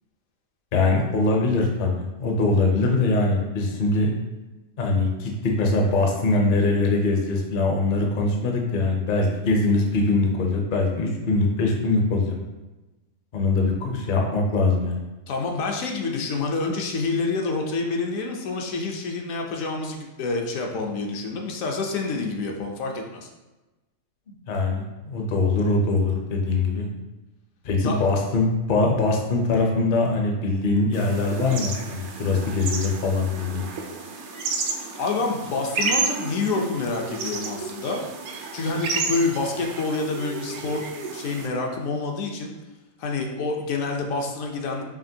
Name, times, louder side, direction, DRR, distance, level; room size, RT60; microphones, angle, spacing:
voice 1, 0.7-4.1 4.8-12.4 13.3-15.0 24.5-26.9 27.6-33.7, left 3 dB, 50° left, 1 dB, 0.6 m, -22 dB
voice 2, 15.3-23.3 27.8-28.0 34.7-38.0 38.5-40.8 41.1-42.5 43.0-44.8, left 3 dB, 75° left, 1 dB, 1.0 m, -27 dB
sound 1, 30.9-41.5, right 4 dB, 90° right, 0.4 m, -31 dB
5.0 x 2.9 x 2.7 m, 1.1 s
omnidirectional pair, 1.4 m